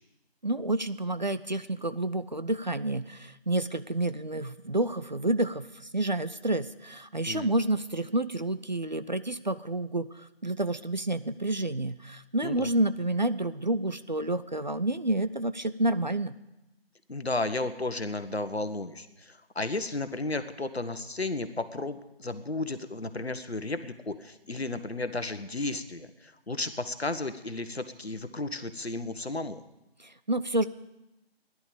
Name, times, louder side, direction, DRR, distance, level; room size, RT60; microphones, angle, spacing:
voice 1, 0.4-16.3 30.0-30.7, right 1 dB, 45° right, 13 dB, 0.5 m, -29 dB
voice 2, 17.1-29.6, left 2 dB, 75° left, 10 dB, 1.4 m, -33 dB
16.0 x 11.0 x 6.8 m, 0.92 s
figure-of-eight pair, 165°, 32 cm